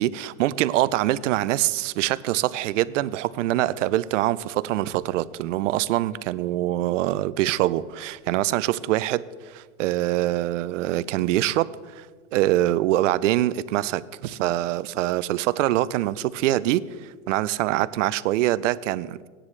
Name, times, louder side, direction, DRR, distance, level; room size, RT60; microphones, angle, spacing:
voice 1, 0.0-12.1 12.3-19.3, right 14 dB, 80° right, 17 dB, 0.5 m, -24 dB
17.0 x 10.0 x 3.2 m, 1.5 s
supercardioid pair, 180°, 37 cm